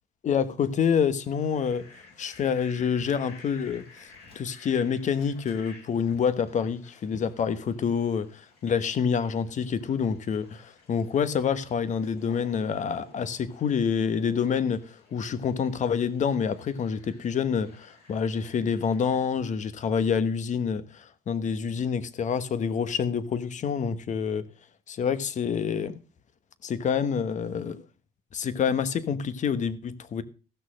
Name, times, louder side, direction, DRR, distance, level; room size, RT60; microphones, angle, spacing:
voice 1, 0.2-1.9 2.2-4.1 4.3-24.5 24.9-26.0 26.6-27.8 28.3-30.2, left 6 dB, 45° left, 1.2 m, -27 dB
Fowl, 1.2-19.3, left 4 dB, 70° left, 7.5 m, -54 dB
15.0 x 6.4 x 6.3 m
cardioid pair, 110°, 17 cm